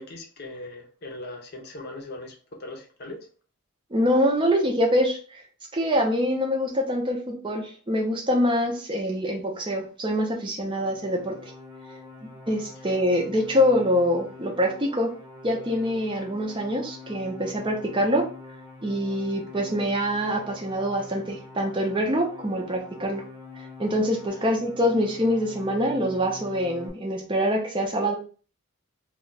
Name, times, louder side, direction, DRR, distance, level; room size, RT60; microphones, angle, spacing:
voice 1, 0.0-3.2, left 2 dB, 45° left, 0.7 m, -39 dB
voice 2, 3.9-5.4 5.7-11.5 12.2-15.1 15.4-18.3 18.8-23.2 23.6-28.2, equal, 20° right, 0.6 m, -25 dB
sound 1, 10.6-26.9, left 3 dB, ahead, 0.9 m, -44 dB
2.3 x 2.2 x 3.9 m
head